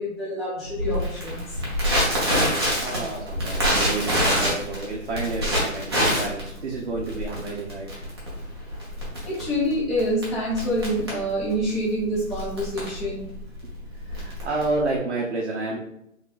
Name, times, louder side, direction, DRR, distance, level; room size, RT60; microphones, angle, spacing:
voice 1, 0.0-1.6 9.2-13.3, equal, ahead, -9 dB, 0.4 m, -27 dB
Crackle, 0.8-15.0, equal, 20° right, 0.8 m, -26 dB
voice 2, 2.4-8.0 13.9-15.8, right 3 dB, 50° right, -3 dB, 0.9 m, -30 dB
3.5 x 2.6 x 3.9 m, 0.75 s
hypercardioid pair, 170°, 41 cm